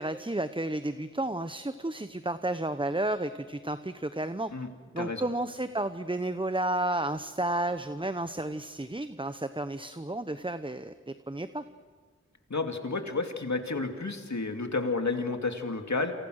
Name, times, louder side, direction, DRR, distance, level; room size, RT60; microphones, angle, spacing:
voice 1, 0.0-4.5 4.9-11.6, right 1 dB, 15° right, 11 dB, 0.8 m, -32 dB
voice 2, 12.5-16.1, left 3 dB, 70° left, 5 dB, 2.5 m, -31 dB
29.0 x 28.0 x 6.5 m, 1.5 s
wide cardioid pair, 55°, 29 cm